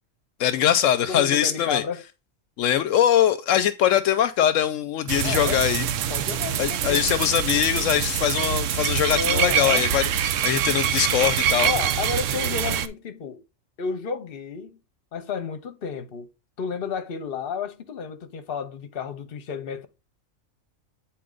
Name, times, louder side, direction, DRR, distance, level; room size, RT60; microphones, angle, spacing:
voice 1, 0.4-1.8 2.6-5.9 6.6-11.7, left 10 dB, 80° left, 0.9 m, -22 dB
voice 2, 1.1-2.0 5.2-5.6 6.1-7.1 9.1-9.9 11.6-13.4 13.8-14.8 15.1-16.3 16.6-19.9, left 6 dB, 50° left, 1.0 m, -31 dB
sound 1, 5.1-12.9, right 9 dB, 75° right, 1.0 m, -25 dB
8.6 x 4.4 x 3.8 m
omnidirectional pair, 1.3 m